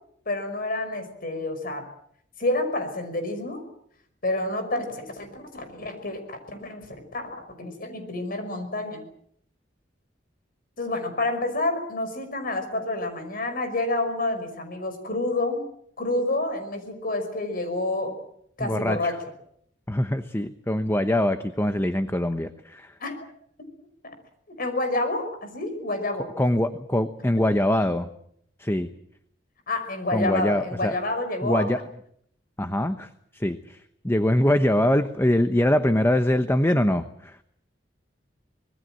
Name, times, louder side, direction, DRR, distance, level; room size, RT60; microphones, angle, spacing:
voice 1, 0.3-1.9 2.4-3.6 4.2-9.1 10.8-15.7 16.0-18.2 18.6-19.2 23.0-23.2 24.0-24.1 24.6-26.3 29.7-31.7, left 2 dB, 50° left, 8 dB, 5.5 m, -29 dB
voice 2, 18.6-19.1 19.9-22.9 26.4-28.1 28.6-28.9 30.1-31.0 31.4-31.8 32.6-37.4, left 1 dB, 15° left, 10 dB, 0.9 m, -23 dB
25.5 x 20.5 x 7.6 m, 0.69 s
head